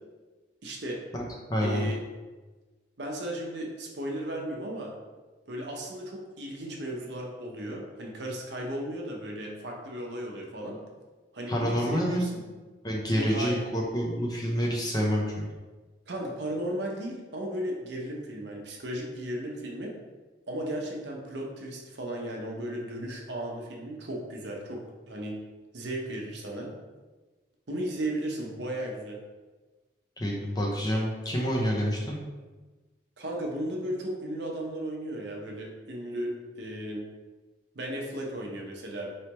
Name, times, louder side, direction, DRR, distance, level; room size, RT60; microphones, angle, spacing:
voice 1, 0.6-1.0 1.6-2.0 3.0-4.9 5.5-10.8 11.3-12.4 13.1-13.6 16.1-19.9 20.5-24.8 25.1-25.3 25.7-26.7 27.7-29.2 33.2-37.1 37.7-39.1, right 1 dB, 65° right, -1 dB, 0.8 m, -35 dB
voice 2, 1.5-1.9 11.5-12.3 12.8-15.5 30.2-32.2, equal, 20° left, -2 dB, 0.6 m, -28 dB
4.5 x 3.2 x 3.0 m, 1.3 s
head